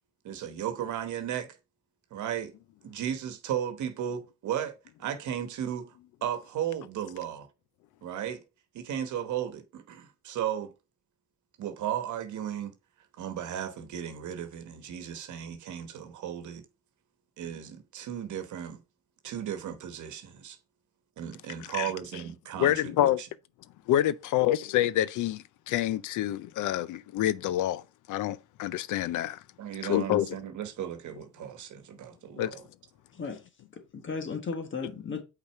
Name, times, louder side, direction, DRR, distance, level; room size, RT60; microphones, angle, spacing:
voice 1, 0.2-1.6 2.1-2.5 2.8-5.9 6.2-7.5 8.0-8.4 8.7-10.7 11.6-12.7 13.2-16.6 17.4-18.8 19.2-20.6 21.2-23.3 29.6-32.7, right 10 dB, 75° right, 1.1 m, -35 dB
voice 2, 22.6-23.2 23.9-27.8 28.1-29.4 29.8-30.3 32.4-32.6, left 12 dB, 85° left, 0.6 m, -27 dB
voice 3, 33.7-35.2, left 4 dB, 40° left, 1.3 m, -35 dB
5.6 x 4.1 x 4.4 m
cardioid pair, 90°, 30 cm